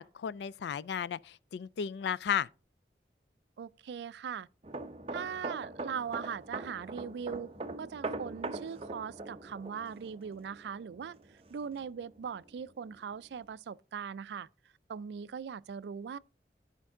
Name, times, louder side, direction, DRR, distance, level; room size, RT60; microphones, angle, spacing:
voice 1, 0.0-2.5, left 8 dB, 75° left, 0.3 m, -34 dB
voice 2, 3.6-4.5 5.1-7.5 7.8-11.2 11.5-14.5 14.9-16.2, right 7 dB, 75° right, 0.3 m, -40 dB
sound 1, 4.6-12.1 12.4-12.7, right 2 dB, 35° right, 0.6 m, -42 dB
11.5 x 5.2 x 3.7 m
head